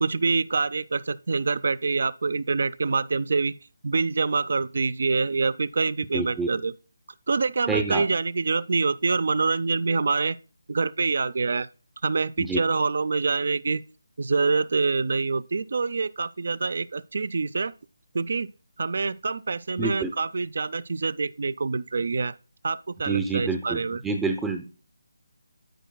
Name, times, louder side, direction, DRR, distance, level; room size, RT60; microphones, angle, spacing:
voice 1, 0.0-3.5 3.8-6.7 7.3-10.4 10.7-11.7 12.0-13.8 14.2-17.7 18.1-18.5 18.8-22.3 22.6-24.0, right 4 dB, 55° right, 0.4 m, -26 dB
voice 2, 6.1-6.5 7.7-8.1 12.4-12.6 19.8-20.1 23.0-24.7, right 4 dB, 5° right, 0.5 m, -27 dB
10.0 x 8.9 x 2.2 m
figure-of-eight pair, 160°, 0 cm